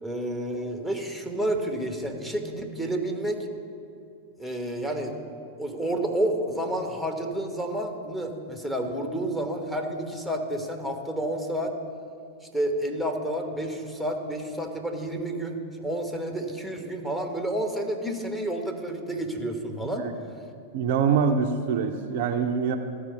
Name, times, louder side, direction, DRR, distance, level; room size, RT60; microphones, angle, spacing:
voice 1, 0.0-3.4 4.4-5.2 5.6-11.7 12.5-20.0, right 1 dB, 5° left, 3 dB, 1.1 m, -30 dB
voice 2, 20.7-22.8, right 6 dB, 50° right, 6 dB, 0.5 m, -24 dB
13.5 x 4.9 x 5.3 m, 2.5 s
figure-of-eight pair, 90°, 0 cm